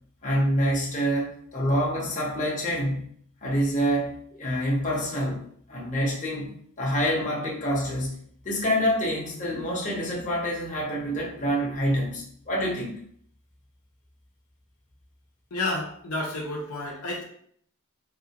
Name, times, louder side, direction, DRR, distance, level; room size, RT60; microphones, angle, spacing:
voice 1, 0.2-3.0 3.4-5.4 5.7-8.2 8.4-12.9, equal, 35° left, -3 dB, 0.9 m, -26 dB
voice 2, 15.5-17.2, left 2 dB, 75° left, -1 dB, 0.6 m, -30 dB
3.2 x 2.4 x 2.9 m, 0.62 s
head